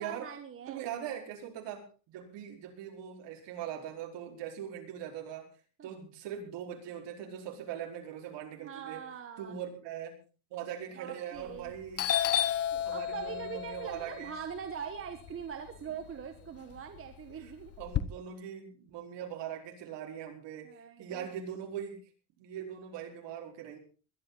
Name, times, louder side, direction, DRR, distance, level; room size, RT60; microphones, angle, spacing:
voice 1, 0.0-0.8 5.8-5.9 8.6-9.6 10.9-11.7 12.9-17.7 20.6-21.3, right 7 dB, 25° right, 5 dB, 1.4 m, -42 dB
voice 2, 0.7-5.5 5.8-9.0 9.4-10.2 10.5-12.3 12.7-14.3 17.3-17.5 17.8-22.0 22.4-23.8, right 9 dB, 55° right, 2 dB, 4.7 m, -41 dB
Doorbell, 11.4-11.7 12.0-16.1 16.5-18.0, left 11 dB, 30° left, 0.8 m, -32 dB
21.0 x 12.5 x 4.0 m, 0.35 s
cardioid pair, 145°, 50 cm